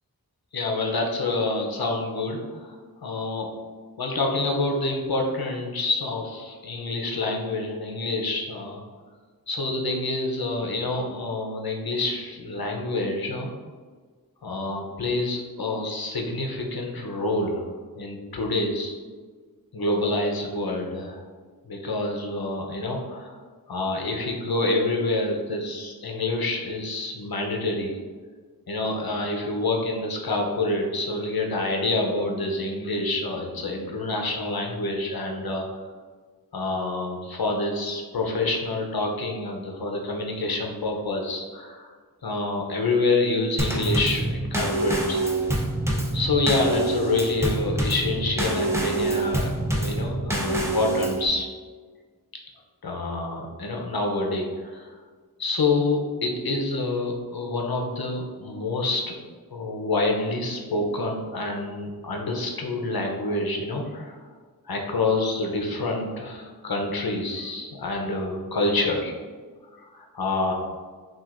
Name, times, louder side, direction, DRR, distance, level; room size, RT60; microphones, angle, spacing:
voice 1, 0.5-3.5 4.0-8.8 9.5-13.5 14.4-18.9 19.7-21.2 21.7-23.4 23.7-28.0 28.7-35.6 36.5-41.9 42.2-45.2 46.1-51.5 52.8-54.9 55.4-59.1 59.5-64.2 64.6-69.1 69.7-70.5, left 2 dB, 80° left, 1 dB, 0.7 m, -27 dB
Drum kit / Snare drum / Bass drum, 43.6-51.3, right 2 dB, 5° right, 0.7 m, -26 dB
5.9 x 2.5 x 2.5 m, 1.5 s
wide cardioid pair, 50°, 36 cm